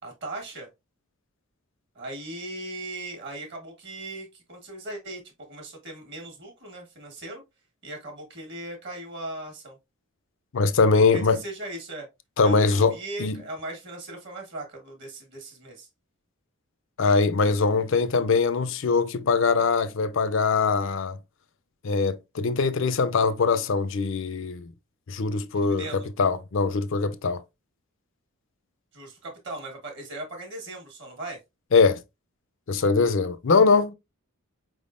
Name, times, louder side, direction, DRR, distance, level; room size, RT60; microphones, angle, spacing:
voice 1, 0.0-0.7 1.9-7.4 7.8-9.8 10.9-12.1 12.4-15.9 25.5-26.1 28.9-31.4, right 2 dB, 50° right, 1.4 m, -38 dB
voice 2, 10.5-11.4 12.4-12.9 13.2-13.4 17.0-21.2 21.8-24.7 25.1-25.8 26.2-27.4 31.7-32.0 32.7-33.9, left 4 dB, 55° left, 0.5 m, -22 dB
4.8 x 3.5 x 2.5 m
head